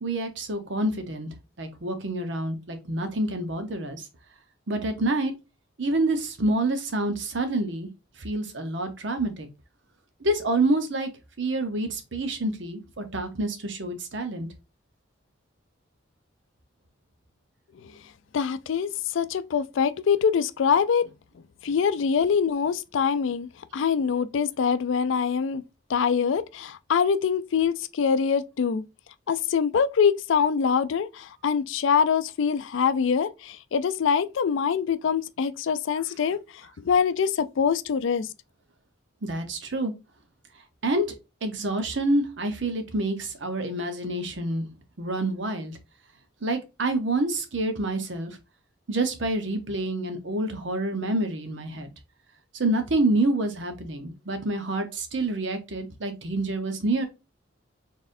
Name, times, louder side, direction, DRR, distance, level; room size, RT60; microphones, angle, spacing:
voice 1, 0.0-1.3 1.6-4.1 4.7-5.3 5.8-7.9 8.2-9.5 10.2-11.1 11.4-14.5 39.2-39.9 40.8-41.1 41.4-44.7 45.0-45.8 46.4-48.4 48.9-51.9 52.5-57.0, right 2 dB, 65° right, 0.9 m, -27 dB
voice 2, 18.3-21.0 21.6-25.6 25.9-28.8 29.3-36.4 36.8-38.3, left 6 dB, 75° left, 0.4 m, -24 dB
4.2 x 3.4 x 2.6 m
head